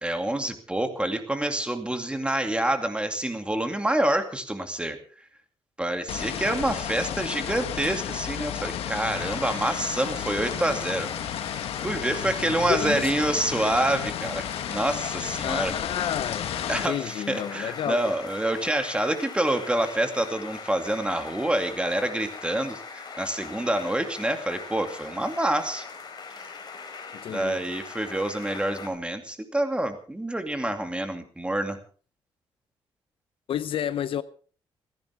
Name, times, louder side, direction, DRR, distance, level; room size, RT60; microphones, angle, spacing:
voice 1, 0.0-5.0 5.8-11.1 11.8-15.7 16.7-25.8 27.3-31.8, right 1 dB, 10° right, 2.4 m, -27 dB
sound 1, 6.1-16.9, left 10 dB, 85° left, 1.3 m, -33 dB
sound 2, 9.1-28.9, left 5 dB, 45° left, 4.4 m, -41 dB
voice 2, 12.7-13.1 15.4-18.1 27.1-27.6 33.5-34.2, left 9 dB, 65° left, 0.7 m, -30 dB
29.5 x 10.5 x 3.6 m
cardioid pair, 110°, 10 cm